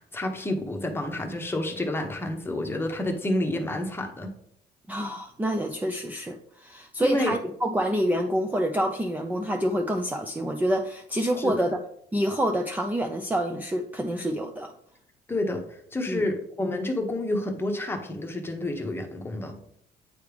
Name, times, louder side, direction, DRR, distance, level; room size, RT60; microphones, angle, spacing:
voice 1, 0.0-4.3 7.0-7.3 11.4-11.7 15.3-19.6, left 1 dB, 15° left, 3 dB, 1.1 m, -29 dB
voice 2, 4.9-11.8 12.1-14.7 16.1-16.2, equal, 10° right, 2 dB, 0.5 m, -27 dB
9.1 x 3.3 x 3.4 m, 0.69 s
cardioid pair, 110°, 17 cm